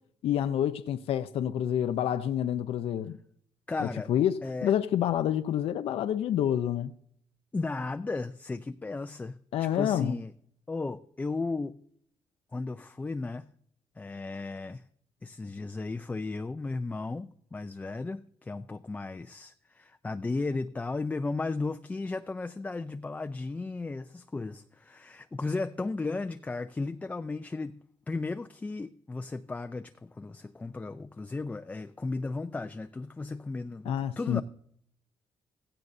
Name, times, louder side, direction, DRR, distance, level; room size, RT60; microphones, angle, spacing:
voice 1, 0.2-3.2 3.8-6.9 9.5-10.1 33.9-34.4, left 10 dB, 75° left, 0.6 m, -28 dB
voice 2, 3.7-4.1 4.4-4.7 7.5-10.3 10.7-11.8 12.5-13.5 14.0-14.8 15.2-27.8 28.1-34.4, left 3 dB, 15° left, 0.4 m, -35 dB
16.5 x 14.5 x 2.6 m
cardioid pair, 140°, 10 cm